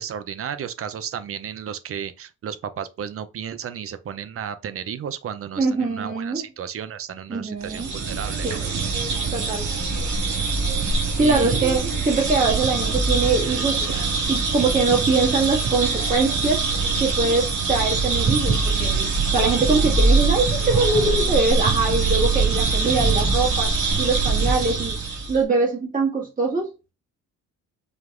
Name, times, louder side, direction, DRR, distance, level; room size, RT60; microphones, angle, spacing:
voice 1, 0.0-8.6 11.2-11.6, right 8 dB, 50° right, 0.6 m, -33 dB
voice 2, 5.6-6.4 7.3-7.9 8.4-8.6 9.3-9.7 10.9-16.7 17.0-24.9 25.3-26.7, right 3 dB, 25° right, 1.9 m, -23 dB
sound 1, 7.6-25.4, right 4 dB, 85° right, 2.1 m, -23 dB
5.2 x 2.9 x 2.5 m
cardioid pair, 90°, 30 cm